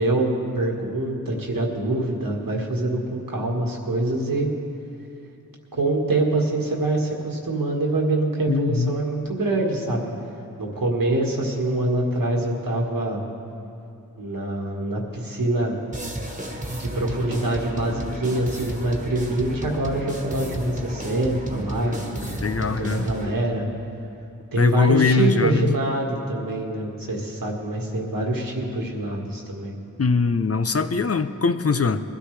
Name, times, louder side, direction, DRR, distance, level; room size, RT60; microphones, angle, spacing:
voice 1, 0.0-4.5 5.7-10.1 10.6-13.2 14.2-15.8 16.7-23.6 24.5-29.7, right 2 dB, 80° right, 0 dB, 1.8 m, -25 dB
voice 2, 8.5-8.9 22.4-23.0 24.6-25.7 30.0-32.0, left 4 dB, 45° left, 10 dB, 0.6 m, -21 dB
sound 1, 15.9-23.3, right 1 dB, 20° right, 1.5 m, -32 dB
21.0 x 13.0 x 3.3 m, 2.7 s
wide cardioid pair, 55°, 33 cm